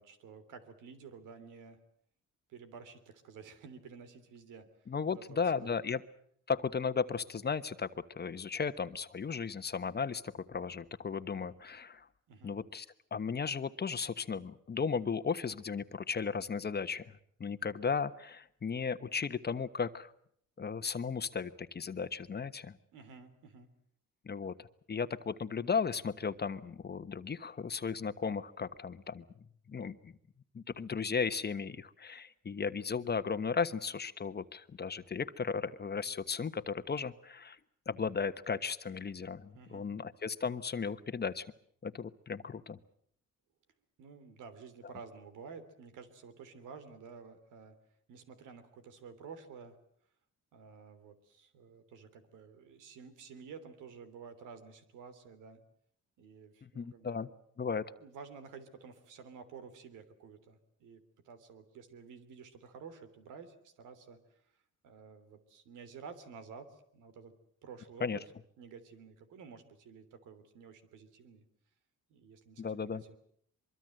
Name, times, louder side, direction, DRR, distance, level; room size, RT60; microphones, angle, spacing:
voice 1, 0.0-1.8 2.5-4.7 5.1-5.9 12.3-12.6 22.9-23.7 39.5-39.9 44.0-47.7 48.1-49.8 50.5-55.6 56.2-57.3 58.0-67.3 67.6-68.2 68.6-71.4 72.1-73.2, right 5 dB, 85° right, 10 dB, 3.2 m, -51 dB
voice 2, 4.9-6.0 6.5-12.1 12.4-12.8 13.1-20.1 20.6-22.8 24.2-29.2 29.7-30.1 30.5-37.6 37.9-41.5 41.8-42.8 56.6-57.3 57.6-57.8 68.0-68.2 72.6-73.0, left 5 dB, 35° left, 12 dB, 1.2 m, -35 dB
23.5 x 23.5 x 7.8 m, 0.66 s
cardioid pair, 90°, 30 cm